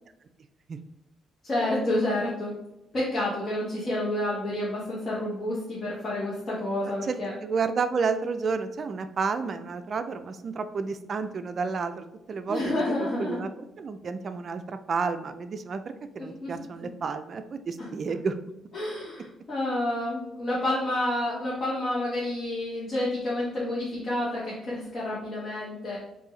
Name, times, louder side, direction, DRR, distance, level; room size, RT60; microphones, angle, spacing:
voice 1, 1.4-2.5 2.9-7.3 12.5-13.4 16.2-16.5 17.8-17.9 18.7-26.0, left 1 dB, 40° left, -8 dB, 1.2 m, -29 dB
voice 2, 7.0-13.5 13.8-18.4, right 5 dB, 45° right, 9 dB, 0.3 m, -31 dB
4.6 x 2.7 x 3.1 m, 0.90 s
cardioid pair, 90°, 0 cm